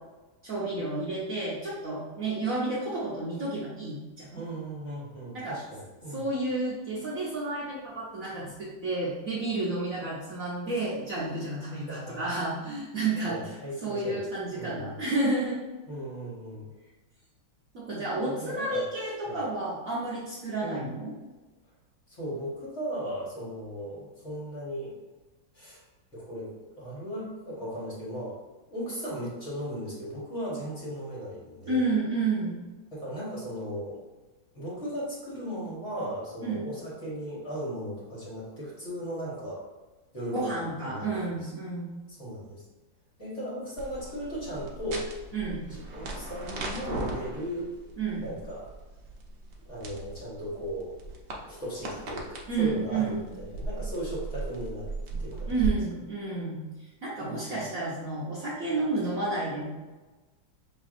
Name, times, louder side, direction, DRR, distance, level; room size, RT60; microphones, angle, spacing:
voice 1, 0.4-4.4 5.3-5.6 6.1-13.4 13.8-15.6 17.7-21.1 31.7-32.6 36.4-36.6 40.3-41.9 45.3-45.6 48.0-48.2 52.5-53.2 55.5-59.6, right 3 dB, 60° right, -7 dB, 0.9 m, -31 dB
voice 2, 4.3-6.3 11.9-12.3 13.3-14.2 14.5-15.0 15.9-16.7 18.2-18.8 19.2-19.3 20.6-20.9 22.1-25.0 25.5-25.8 26.1-28.4 28.7-31.9 32.9-34.0 34.5-39.6 40.1-41.5 42.1-42.6 43.2-45.1 45.7-47.7 48.2-48.7 49.7-50.9 51.4-55.5 57.2-57.6, equal, 40° left, -7 dB, 1.5 m, -37 dB
sound 1, 43.8-55.7, right 2 dB, 90° right, 0.6 m, -38 dB
6.0 x 3.3 x 2.5 m, 1.2 s
omnidirectional pair, 2.2 m